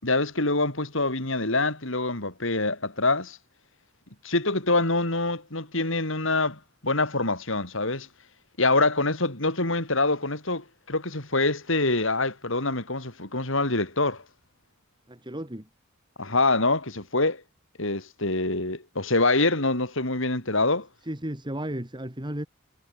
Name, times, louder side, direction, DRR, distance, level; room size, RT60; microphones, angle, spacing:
voice 1, 0.0-3.4 4.2-8.1 8.6-14.2 16.2-17.4 17.8-20.9, left 2 dB, 65° left, 5.5 m, -25 dB
voice 2, 15.1-15.7 21.0-22.5, right 1 dB, 25° right, 3.2 m, -34 dB
head